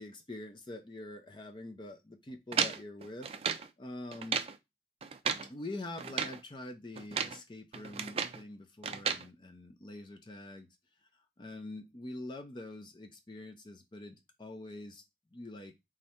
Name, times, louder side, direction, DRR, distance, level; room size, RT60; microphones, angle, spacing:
voice 1, 0.0-3.3 3.8-4.4 5.5-10.7 11.4-15.0 15.3-15.7, left 2 dB, 25° left, 0.5 m, -45 dB
sound 1, 2.5-3.7 4.1-4.6 5.0-5.5 6.0-6.4 7.0-7.4 7.7-8.4 8.8-9.3, right 7 dB, 35° right, 0.4 m, -34 dB
3.6 x 3.2 x 4.3 m
head